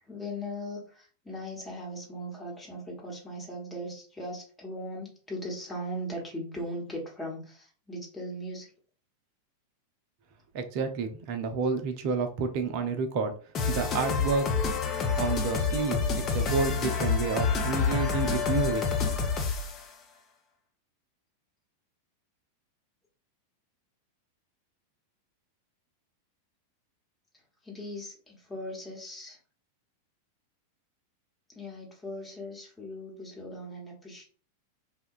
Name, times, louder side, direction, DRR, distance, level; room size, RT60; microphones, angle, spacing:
voice 1, 0.1-8.7 27.6-29.4 31.5-34.2, equal, 10° left, -3 dB, 1.0 m, -39 dB
voice 2, 10.5-13.3 13.7-14.5 15.2-18.8, right 4 dB, 45° right, 7 dB, 0.5 m, -30 dB
sound 1, 13.5-19.8, left 5 dB, 30° left, 0.5 m, -28 dB
2.8 x 2.2 x 2.4 m, 0.42 s
figure-of-eight pair, 90°, 0 cm